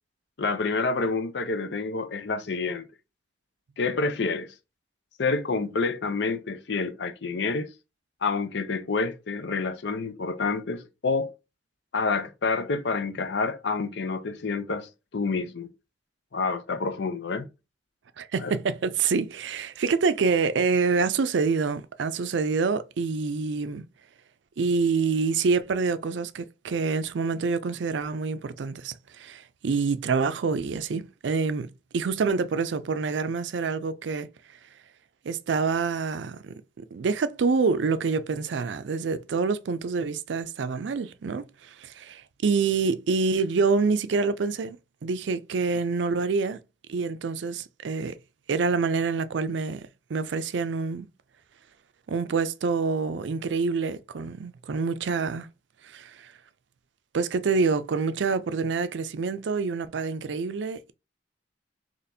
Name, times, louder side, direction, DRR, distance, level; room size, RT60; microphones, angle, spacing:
voice 1, 0.4-2.9 3.8-4.5 5.2-7.7 8.2-11.3 11.9-15.7 16.3-17.5 18.4-18.6, left 4 dB, 70° left, 0.6 m, -28 dB
voice 2, 18.2-23.8 24.6-31.7 31.9-34.3 35.2-44.8 45.0-46.6 46.9-48.2 48.5-51.1 52.1-55.5 55.8-56.3 57.1-60.9, right 4 dB, 75° right, 0.4 m, -27 dB
4.1 x 3.0 x 2.6 m
head